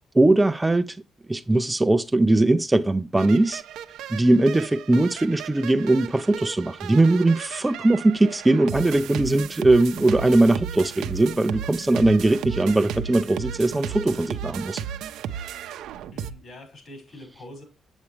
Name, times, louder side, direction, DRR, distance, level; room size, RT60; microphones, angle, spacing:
voice 1, 0.1-1.0 1.3-3.6 4.1-14.8, right 2 dB, 15° right, 0.4 m, -20 dB
sound 1, 3.2-16.3, right 9 dB, 85° right, 0.6 m, -35 dB
voice 2, 16.1-17.6, left 1 dB, 55° left, 5.6 m, -44 dB
8.2 x 8.1 x 3.2 m
cardioid pair, 90°, 0 cm